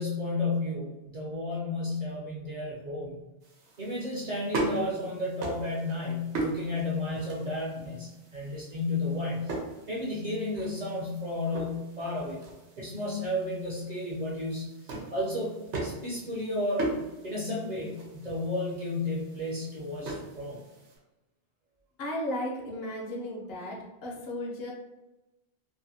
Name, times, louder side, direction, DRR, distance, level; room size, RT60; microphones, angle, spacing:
voice 1, 0.0-3.1 3.8-9.5 9.9-12.4 12.8-20.6, left 2 dB, 50° right, -5 dB, 0.5 m, -32 dB
sound 1, 3.4-21.0, right 2 dB, 90° right, 1.0 m, -39 dB
voice 2, 22.0-24.7, left 1 dB, 65° left, 0 dB, 0.8 m, -35 dB
2.7 x 2.5 x 2.7 m, 1.0 s
omnidirectional pair, 1.2 m